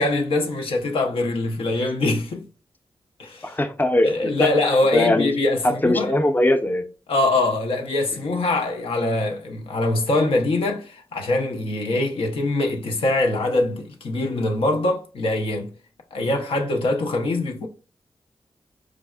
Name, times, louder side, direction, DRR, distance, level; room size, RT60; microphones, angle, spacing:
voice 1, 0.0-2.5 3.2-3.6 4.0-6.1 7.1-15.7 16.1-17.7, left 2 dB, 75° left, 0.5 m, -23 dB
voice 2, 3.4-4.5 4.9-5.3 5.6-6.8 8.1-8.3, left 1 dB, 20° left, 0.5 m, -21 dB
4.8 x 2.0 x 2.2 m
cardioid pair, 40°, 9 cm